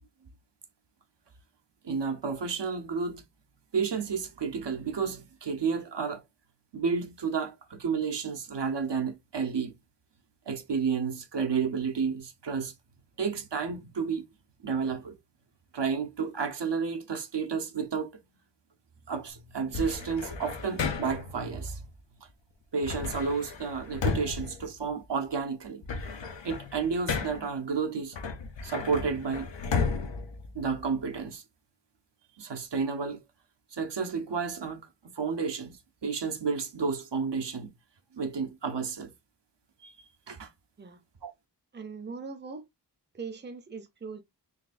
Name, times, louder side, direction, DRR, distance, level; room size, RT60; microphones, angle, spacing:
voice 1, 1.8-3.2 3.7-6.2 6.7-9.7 10.5-12.7 13.2-14.3 14.6-15.2 15.7-18.2 19.1-21.8 22.7-25.9 26.4-28.2 28.6-29.5 30.5-31.4 32.4-33.2 33.7-34.9 35.2-35.8 36.0-37.7 38.1-39.1 39.8-39.9 40.3-40.5 41.2-41.3, right 5 dB, 75° right, 0.8 m, -31 dB
sound 1, 19.7-21.4 22.8-25.3 25.6-27.6 28.1-31.2, left 5 dB, 90° left, 0.7 m, -34 dB
voice 2, 41.7-42.6 43.1-44.2, right 5 dB, 25° right, 0.6 m, -40 dB
4.0 x 3.1 x 2.5 m
wide cardioid pair, 70°, 43 cm